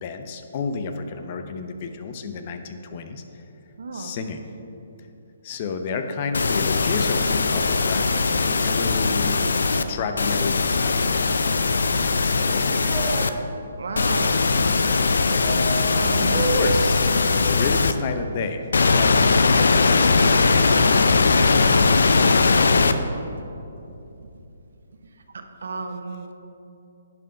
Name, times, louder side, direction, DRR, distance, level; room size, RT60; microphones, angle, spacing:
voice 1, 0.0-3.4 3.9-4.4 5.4-8.1 8.4-9.4 9.9-11.3 11.7-13.2 16.3-19.4 19.6-21.4 22.1-22.4, left 5 dB, 40° left, 7 dB, 0.7 m, -31 dB
voice 2, 3.8-4.1 8.8-9.2 13.8-14.4 15.9-16.4 25.3-26.3, right 4 dB, 65° right, 6 dB, 0.9 m, -33 dB
sound 1, 6.3-9.8 10.2-13.3 14.0-17.9 18.7-22.9, left 4 dB, 70° left, 0.5 m, -20 dB
sound 2, 12.4-13.3 15.4-17.1, right 4 dB, 10° right, 2.1 m, -30 dB
10.5 x 5.4 x 5.6 m, 2.9 s
figure-of-eight pair, 140°, 0 cm